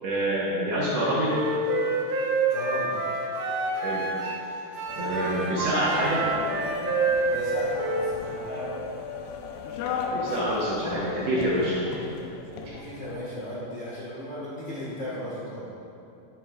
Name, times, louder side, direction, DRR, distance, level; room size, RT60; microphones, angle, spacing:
voice 1, 0.0-1.4 3.8-4.3 5.0-6.3 10.1-11.8 12.6-12.7, right 1 dB, 75° right, -6 dB, 1.5 m, -27 dB
Wind instrument woodwind instrument, 1.2-4.4 4.7-8.2, right 2 dB, 60° right, 2.0 m, -28 dB
voice 2, 2.5-2.9 7.3-8.7 12.7-15.6, left 1 dB, 50° left, -9 dB, 1.4 m, -36 dB
sound 1, 4.9-13.2, left 5 dB, 75° left, 2.4 m, -36 dB
14.5 x 8.6 x 2.4 m, 2.7 s
omnidirectional pair, 4.5 m